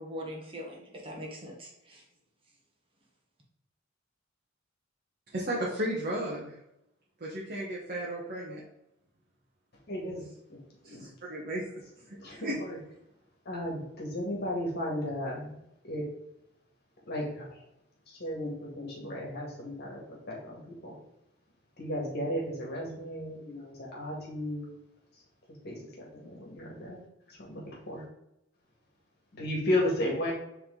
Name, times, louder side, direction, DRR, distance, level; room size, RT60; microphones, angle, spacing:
voice 1, 0.0-2.0, equal, 30° right, -1 dB, 1.3 m, -41 dB
voice 2, 5.3-6.5 7.2-8.6 10.8-11.6 12.1-12.6, right 1 dB, 50° right, -4 dB, 1.2 m, -34 dB
voice 3, 9.9-10.6 10.8-11.0 12.2-12.8 13.5-15.5 15.8-16.1 17.1-17.4 18.2-20.9 21.8-24.7 25.6-27.0 27.4-28.0 29.3-30.3, left 1 dB, 55° left, -3 dB, 1.9 m, -34 dB
7.7 x 3.6 x 3.8 m, 0.86 s
head